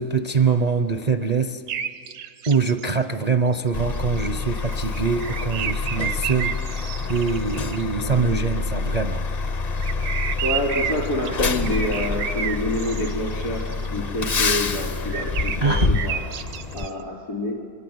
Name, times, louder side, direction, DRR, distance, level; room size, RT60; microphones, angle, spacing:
voice 1, 0.0-1.6 2.5-9.2 15.6-15.9, right 5 dB, 45° right, 0.5 m, -23 dB
sound 1, 1.7-2.9 3.6-3.7 3.9-7.8 9.8-13.9 14.3-14.8 15.1-16.9, right 8 dB, 90° right, 1.5 m, -31 dB
Truck, 3.7-16.9, left 4 dB, 35° left, 0.7 m, -27 dB
voice 2, 8.0-8.4 10.4-13.6 13.9-16.2 16.7-17.5, left 1 dB, 75° left, 5.2 m, -27 dB
25.0 x 23.5 x 9.4 m
omnidirectional pair, 1.6 m